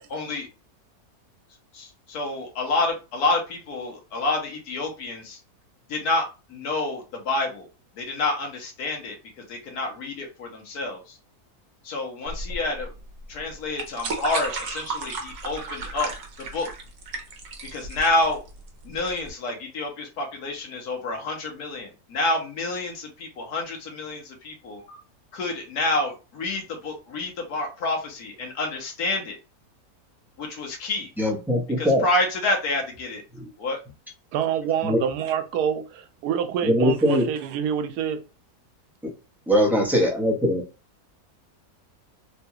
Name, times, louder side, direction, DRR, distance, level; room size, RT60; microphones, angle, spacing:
voice 1, 0.1-0.5 1.7-5.4 5.9-6.2 6.5-7.7 8.0-11.2 11.8-12.9 13.3-16.1 16.4-16.7 17.7-18.4 18.8-25.0 25.3-29.4 30.4-31.1 31.8-33.2 33.6-33.8, left 2 dB, 75° left, 1.5 m, -28 dB
sound 1, 12.3-19.3, right 3 dB, 60° right, 1.1 m, -34 dB
voice 2, 31.2-32.0 33.3-33.4 34.8-35.0 36.6-37.2 39.5-40.6, equal, ahead, 0.6 m, -21 dB
voice 3, 34.3-38.2, right 8 dB, 85° right, 1.1 m, -27 dB
3.6 x 2.3 x 2.8 m
omnidirectional pair, 1.6 m